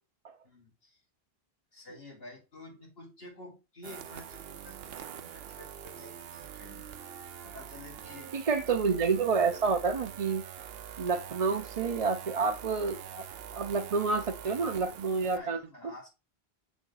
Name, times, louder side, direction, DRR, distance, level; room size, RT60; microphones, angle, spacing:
voice 1, 0.4-1.0 1.7-7.0 7.4-8.3 15.2-16.1, left 1 dB, 70° left, -2 dB, 2.4 m, -50 dB
sound 1, 3.8-15.4, right 9 dB, 75° right, 0.8 m, -44 dB
voice 2, 8.3-10.4 11.0-13.2 13.5-15.6, right 4 dB, 45° right, 4 dB, 0.6 m, -29 dB
7.0 x 3.6 x 3.9 m, 0.28 s
omnidirectional pair, 1.0 m